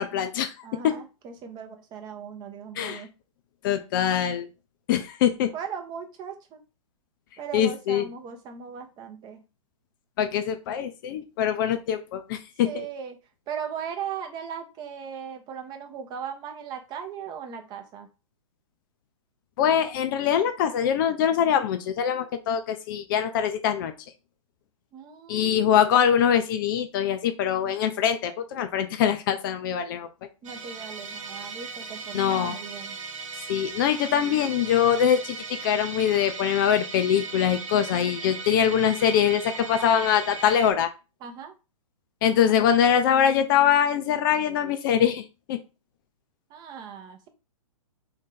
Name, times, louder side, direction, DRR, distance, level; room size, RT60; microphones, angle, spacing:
voice 1, 0.0-0.5 0.8-0.9 2.8-3.0 3.6-4.5 4.9-5.5 7.5-8.1 10.2-12.8 19.6-23.9 25.3-30.1 32.1-32.6 33.5-40.9 42.2-45.6, left 9 dB, 35° left, 8 dB, 0.4 m, -23 dB
voice 2, 0.6-3.1 5.5-6.6 7.4-9.4 12.6-13.2 13.5-18.1 24.9-26.0 30.4-33.0 41.2-41.5 46.5-47.3, right 7 dB, 25° right, 5 dB, 0.7 m, -38 dB
Musical instrument, 30.4-40.7, right 4 dB, 65° right, 0.7 m, -37 dB
3.1 x 2.7 x 3.7 m, 0.30 s
hypercardioid pair, 120°, 18 cm